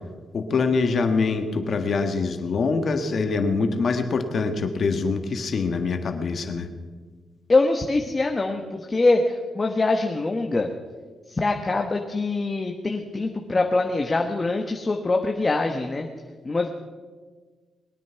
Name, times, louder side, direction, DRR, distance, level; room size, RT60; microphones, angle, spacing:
voice 1, 0.3-6.7, left 4 dB, 60° left, 7 dB, 1.6 m, -24 dB
voice 2, 7.5-10.7 11.3-16.1 16.4-16.7, left 3 dB, 30° left, 3 dB, 1.3 m, -23 dB
21.0 x 9.3 x 5.9 m, 1.4 s
cardioid pair, 70°, 0 cm